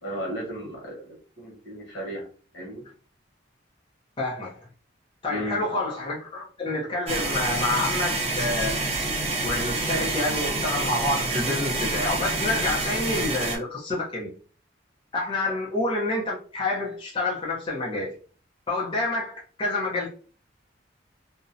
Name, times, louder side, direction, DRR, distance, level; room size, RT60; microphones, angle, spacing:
voice 1, 0.0-2.3 2.5-2.8 5.3-5.6 15.4-15.5, equal, 85° left, 1.0 m, -35 dB
voice 2, 4.2-4.6 5.2-8.9 9.4-14.3 15.1-18.1 18.7-20.1, left 2 dB, 25° left, 0.5 m, -28 dB
sound 1, 7.1-13.6, right 2 dB, 35° right, 0.4 m, -27 dB
2.5 x 2.0 x 2.5 m
head